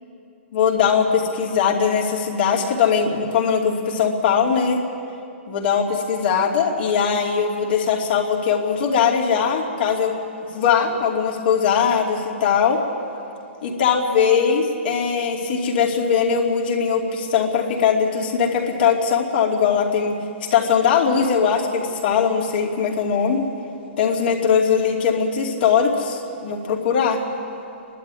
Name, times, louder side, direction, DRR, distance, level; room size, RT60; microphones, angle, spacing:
voice 1, 0.5-1.1 1.4-4.8 5.5-10.1 10.5-12.8 13.6-20.2 20.5-23.4 24.0-27.2, left 6 dB, 50° left, -1 dB, 2.7 m, -20 dB
30.0 x 12.0 x 9.7 m, 2.6 s
hypercardioid pair, 165°, 7 cm